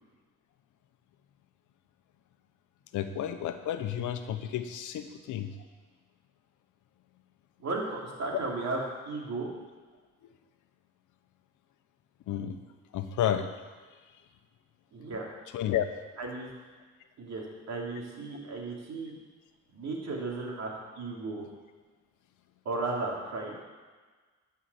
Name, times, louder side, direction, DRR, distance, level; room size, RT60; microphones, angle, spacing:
voice 1, 2.9-5.5 12.3-12.6 12.9-13.5 15.5-15.9, left 10 dB, 80° left, 8 dB, 1.0 m, -31 dB
voice 2, 7.6-8.8 9.1-9.5 14.9-15.3 16.2-16.5 17.2-19.1 19.7-21.5 22.6-23.5, right 3 dB, 60° right, -2 dB, 3.1 m, -35 dB
11.5 x 5.8 x 8.4 m, 1.4 s
cardioid pair, 90°, 30 cm